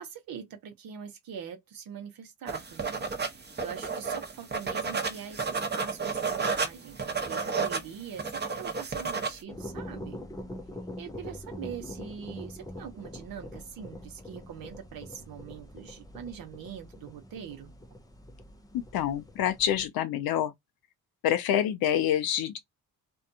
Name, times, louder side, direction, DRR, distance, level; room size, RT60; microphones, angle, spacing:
voice 1, 0.0-3.1 3.3-10.2 11.0-17.7, right 8 dB, 70° right, 0.8 m, -43 dB
sound 1, 2.5-9.4, right 4 dB, 30° right, 0.8 m, -32 dB
sound 2, 9.5-19.9, left 1 dB, 10° left, 0.5 m, -44 dB
voice 2, 18.9-20.5 21.2-22.6, left 10 dB, 75° left, 0.5 m, -27 dB
2.5 x 2.3 x 2.6 m
cardioid pair, 70°, 36 cm